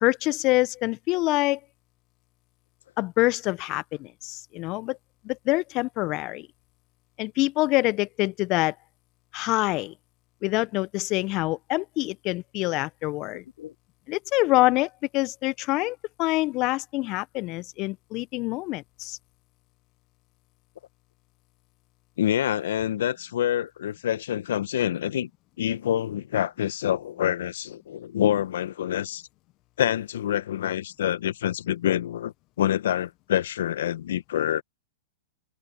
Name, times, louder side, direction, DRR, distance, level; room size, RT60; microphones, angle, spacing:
voice 1, 0.0-1.6 3.0-5.0 5.2-6.5 7.2-8.7 9.3-9.9 10.4-13.4 14.1-19.2, left 21 dB, 40° left, 1.2 m, -26 dB
voice 2, 22.2-25.3 25.6-29.2 29.8-34.6, left 11 dB, 70° left, 1.4 m, -26 dB
open air
hypercardioid pair, 110°, 0 cm